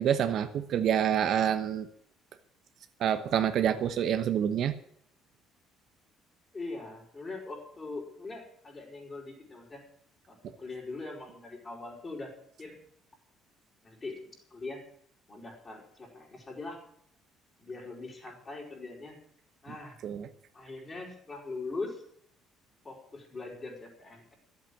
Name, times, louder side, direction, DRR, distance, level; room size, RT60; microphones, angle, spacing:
voice 1, 0.0-1.9 3.0-4.7 20.0-20.3, right 9 dB, 60° right, 10 dB, 1.0 m, -27 dB
voice 2, 6.5-9.8 10.3-12.3 12.6-12.8 13.8-14.8 15.3-16.8 17.6-19.2 19.6-20.0 20.5-22.0 22.8-24.3, left 3 dB, 30° left, 0 dB, 5.2 m, -41 dB
12.0 x 8.2 x 8.8 m, 0.67 s
supercardioid pair, 90°, 0 cm